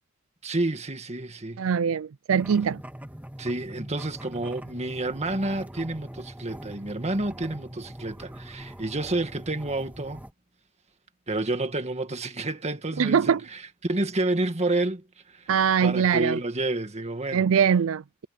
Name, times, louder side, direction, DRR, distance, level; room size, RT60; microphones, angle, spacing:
voice 1, 0.4-1.6 3.4-10.2 11.3-15.5 15.8-17.5, right 2 dB, 35° right, 1.8 m, -29 dB
voice 2, 1.6-2.8 13.0-13.4 15.5-16.4 17.3-18.3, right 7 dB, 80° right, 0.4 m, -22 dB
sound 1, 2.3-10.3, right 1 dB, 10° right, 2.2 m, -42 dB
head